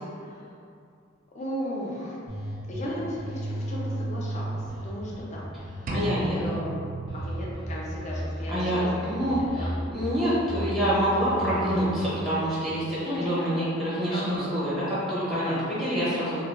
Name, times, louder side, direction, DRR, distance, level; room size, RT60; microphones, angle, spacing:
voice 1, 1.3-2.2 2.7-5.5 5.9-6.7 7.1-8.8 9.5-9.7 13.0-13.3 14.1-14.6 15.4-15.7, equal, 35° left, -5 dB, 0.5 m, -35 dB
sound 1, 2.3-2.8 3.2-5.2 5.6-7.7 8.0-10.0 10.4-11.8, right 1 dB, 70° left, 1.4 m, -35 dB
voice 2, 5.9-6.4 8.5-16.4, equal, ahead, -10 dB, 0.7 m, -26 dB
sound 2, 5.9-7.8, equal, 40° right, 0.3 m, -33 dB
3.2 x 2.3 x 2.5 m, 2.4 s
head